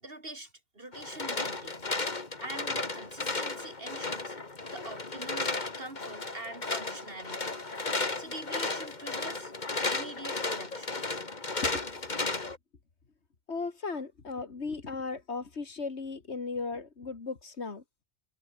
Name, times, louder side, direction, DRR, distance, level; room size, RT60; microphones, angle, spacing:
voice 1, 0.0-1.9 2.4-4.4 4.7-7.6 8.2-9.5 9.9-11.0, right 2 dB, 55° right, 4.6 m, -44 dB
sound 1, 0.9-12.6, left 3 dB, 40° left, 2.2 m, -34 dB
voice 2, 13.5-17.8, left 4 dB, 75° left, 2.4 m, -36 dB
omnidirectional pair, 1.1 m